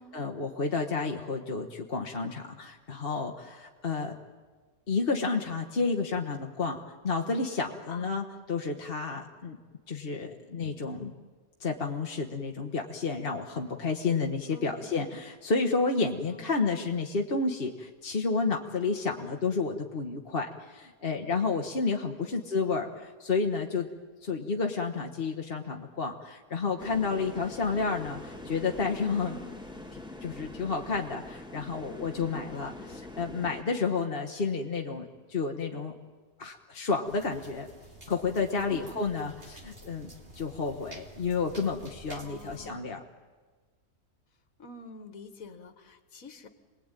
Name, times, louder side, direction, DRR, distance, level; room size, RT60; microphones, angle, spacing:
voice 1, 0.0-4.1 4.9-9.6 9.9-11.1 11.6-23.9 24.2-29.3 30.2-35.9 36.4-37.7 38.1-43.0, left 4 dB, 40° left, 2 dB, 1.4 m, -31 dB
voice 2, 7.9-8.2 14.5-15.0 16.3-16.7 19.2-19.4 22.2-23.0 29.2-29.7 32.5-32.9 38.7-39.1 42.2-43.0 44.6-46.5, left 3 dB, 65° left, 9 dB, 2.0 m, -48 dB
sound 1, 26.8-33.6, left 1 dB, 5° right, 3.5 m, -44 dB
sound 2, 37.1-42.7, right 1 dB, 40° right, 2.8 m, -50 dB
28.5 x 20.5 x 9.1 m, 1.4 s
omnidirectional pair, 1.6 m